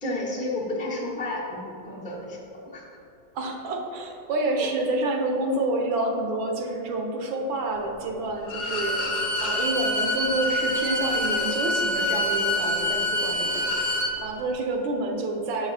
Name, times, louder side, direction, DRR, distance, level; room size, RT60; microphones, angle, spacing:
voice 1, 0.0-2.9, left 2 dB, 10° left, -7 dB, 0.5 m, -32 dB
voice 2, 3.3-13.9 14.2-15.7, right 2 dB, 75° right, 2 dB, 1.5 m, -28 dB
Bowed string instrument, 8.4-14.1, left 1 dB, 50° left, 0.9 m, -26 dB
6.6 x 6.5 x 3.3 m, 2.9 s
omnidirectional pair, 2.2 m